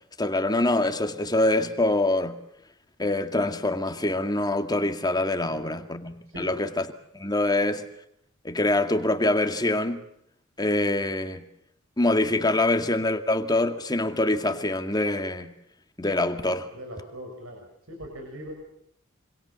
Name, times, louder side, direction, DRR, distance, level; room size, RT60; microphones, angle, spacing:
voice 1, 0.2-2.4 3.0-6.9 7.1-7.8 8.4-10.0 10.6-11.4 12.0-15.5 16.0-16.7, left 2 dB, 20° left, 2.2 m, -25 dB
voice 2, 5.4-5.9 6.3-6.6 16.7-18.5, equal, 70° right, 7.1 m, -40 dB
26.5 x 26.0 x 7.3 m
head